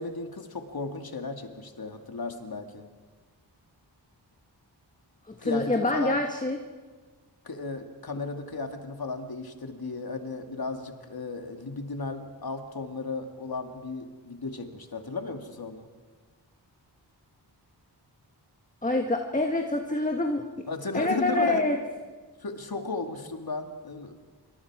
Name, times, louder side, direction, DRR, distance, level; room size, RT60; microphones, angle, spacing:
voice 1, 0.0-2.9 5.4-6.2 7.4-15.9 20.7-21.6 22.4-24.1, left 3 dB, 55° left, 5 dB, 2.2 m, -35 dB
voice 2, 5.3-6.6 18.8-20.7 20.9-21.8, left 2 dB, 20° left, 3 dB, 1.4 m, -26 dB
26.5 x 24.0 x 4.8 m, 1.4 s
wide cardioid pair, 100°, 43 cm